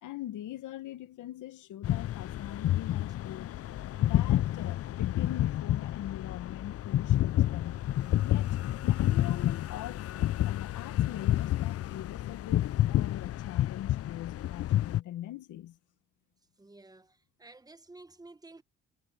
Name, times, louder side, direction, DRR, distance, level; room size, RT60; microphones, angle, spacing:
voice 1, 0.0-3.5 4.0-7.8 8.2-10.1 10.4-15.8, left 13 dB, 80° left, 1.5 m, -42 dB
sound 1, 1.8-15.0, left 13 dB, 50° left, 0.5 m, -29 dB
voice 2, 16.6-18.6, right 2 dB, 10° right, 1.2 m, -52 dB
cardioid pair, 90°, 30 cm